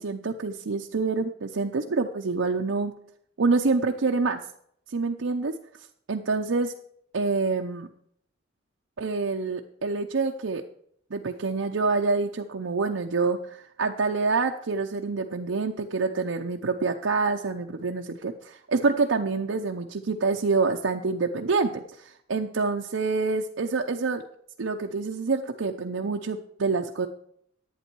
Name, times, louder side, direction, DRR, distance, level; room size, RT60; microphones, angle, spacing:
voice 1, 0.0-2.9 3.4-4.4 4.9-5.5 6.1-6.7 7.1-7.9 9.0-10.6 11.1-24.2 24.6-27.1, right 4 dB, 90° right, 2 dB, 0.7 m, -27 dB
11.0 x 8.9 x 4.6 m, 0.67 s
head